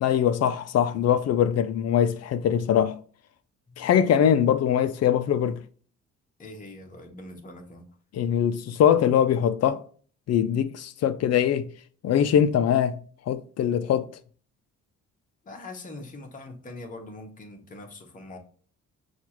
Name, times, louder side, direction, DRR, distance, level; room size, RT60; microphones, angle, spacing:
voice 1, 0.0-3.0 3.8-5.6 8.1-9.8 10.3-11.7 12.0-13.0 13.3-14.1, left 9 dB, 55° left, 0.4 m, -22 dB
voice 2, 6.4-7.9 15.4-18.4, left 2 dB, 25° left, 0.9 m, -42 dB
5.9 x 2.4 x 2.9 m
cardioid pair, 90°, 30 cm